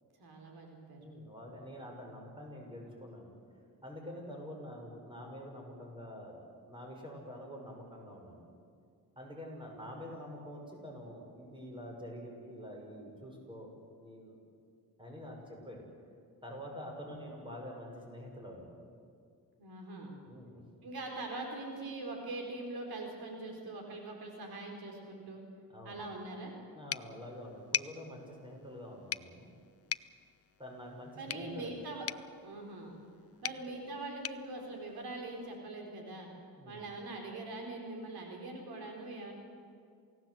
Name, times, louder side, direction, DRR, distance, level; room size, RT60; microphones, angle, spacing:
voice 1, 0.2-1.0 17.0-17.3 19.6-20.1 20.8-25.4 25.8-26.5 31.2-32.1 32.4-32.9 33.4-36.3 36.7-39.3, right 2 dB, 80° right, 2 dB, 4.5 m, -42 dB
voice 2, 1.0-3.4 3.8-6.4 6.7-8.4 9.2-14.4 15.0-15.9 16.4-18.7 20.2-20.6 25.7-26.0 26.7-29.5 30.6-31.8 33.4-33.8 36.6-36.8, equal, 15° right, 0 dB, 6.5 m, -47 dB
sound 1, 26.9-35.6, left 9 dB, 40° left, 0.5 m, -43 dB
28.0 x 17.5 x 8.1 m, 2.3 s
cardioid pair, 105°, 37 cm